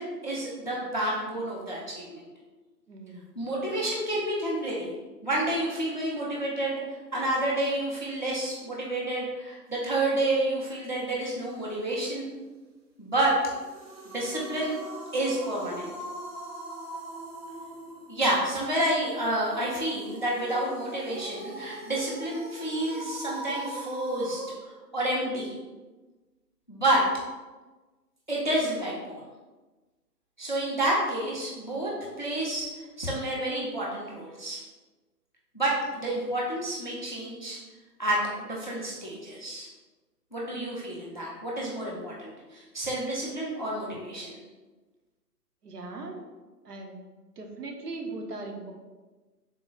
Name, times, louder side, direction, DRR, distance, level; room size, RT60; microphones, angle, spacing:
voice 1, 0.0-2.3 3.4-4.9 5.2-6.8 7.1-12.3 13.0-13.3 14.0-14.8 15.1-15.9 18.1-24.4 24.9-25.5 26.7-27.0 28.3-29.2 30.4-31.9 32.2-32.7 33.0-34.6 35.5-37.6 38.0-39.7 40.3-44.4, right 1 dB, 30° left, -4 dB, 0.4 m, -29 dB
voice 2, 2.9-3.3 43.9-44.0 45.6-46.2 46.6-47.0 47.4-48.7, right 3 dB, 65° right, 2 dB, 0.8 m, -39 dB
sound 1, 13.4-24.5, right 1 dB, 40° right, 0.7 m, -41 dB
3.8 x 2.1 x 3.8 m, 1.2 s
figure-of-eight pair, 135°, 50 cm